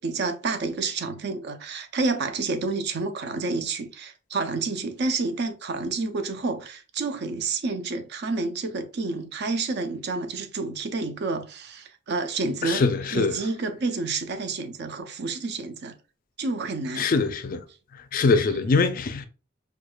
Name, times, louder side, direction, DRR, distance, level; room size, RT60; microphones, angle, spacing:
voice 1, 0.0-15.9 16.4-17.1, right 3 dB, 55° right, 0.5 m, -29 dB
voice 2, 12.6-13.3 17.0-17.6 18.1-19.3, left 4 dB, 45° left, 0.4 m, -23 dB
4.5 x 2.3 x 2.3 m
head